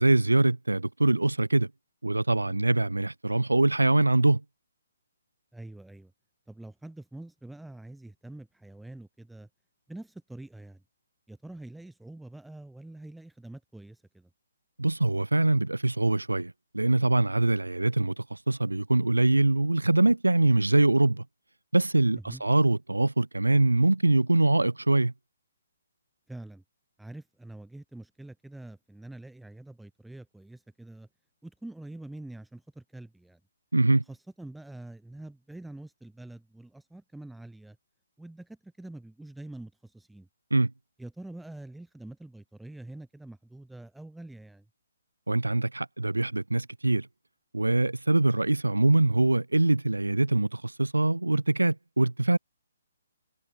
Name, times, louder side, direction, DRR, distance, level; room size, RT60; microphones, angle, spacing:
voice 1, 0.0-1.7 2.0-4.4 14.8-21.2 21.7-25.1 33.7-34.0 40.5-40.7 45.3-47.1 47.5-52.4, right 2 dB, 85° right, 0.9 m, -23 dB
voice 2, 5.5-6.1 6.5-9.5 9.9-10.8 11.3-14.3 22.1-22.4 26.3-26.6 27.0-31.1 31.4-33.4 34.1-37.8 38.2-40.3 41.0-44.6, right 2 dB, ahead, 2.6 m, -45 dB
figure-of-eight pair, 135°, 0 cm